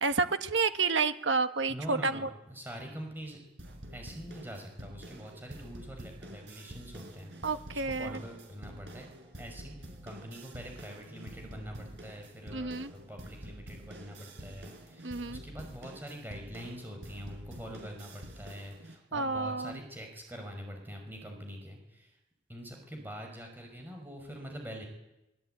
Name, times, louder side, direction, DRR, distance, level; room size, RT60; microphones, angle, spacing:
voice 1, 0.0-2.3 7.4-8.1 12.5-12.9 15.0-15.4 19.1-19.8, right 4 dB, 90° right, 9 dB, 1.5 m, -30 dB
voice 2, 1.7-3.4 3.9-9.1 9.4-22.1 22.5-24.8, equal, 10° right, 2 dB, 5.7 m, -44 dB
sound 1, 3.6-18.9, right 1 dB, 70° right, 5.0 m, -48 dB
24.5 x 21.5 x 9.3 m, 0.93 s
head